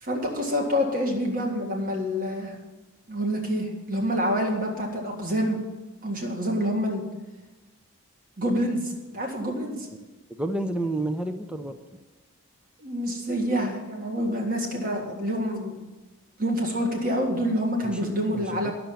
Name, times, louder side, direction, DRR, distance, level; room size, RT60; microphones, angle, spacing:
voice 1, 0.0-2.6 3.1-5.6 6.0-7.0 8.4-9.9 12.8-15.7 16.4-18.7, equal, 40° right, 1 dB, 1.8 m, -27 dB
voice 2, 10.4-11.8 17.8-18.7, right 1 dB, 5° right, 8 dB, 0.5 m, -30 dB
10.5 x 6.8 x 8.8 m, 1.2 s
head